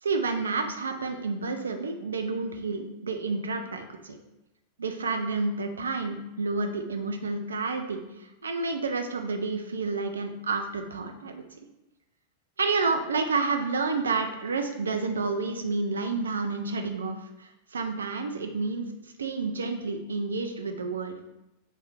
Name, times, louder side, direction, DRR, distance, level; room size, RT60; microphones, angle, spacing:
voice 1, 0.0-4.2 4.8-11.4 12.6-18.9 19.2-21.2, right 4 dB, 70° right, 5 dB, 0.3 m, -30 dB
2.8 x 2.3 x 3.4 m, 0.91 s
figure-of-eight pair, 90°, 0 cm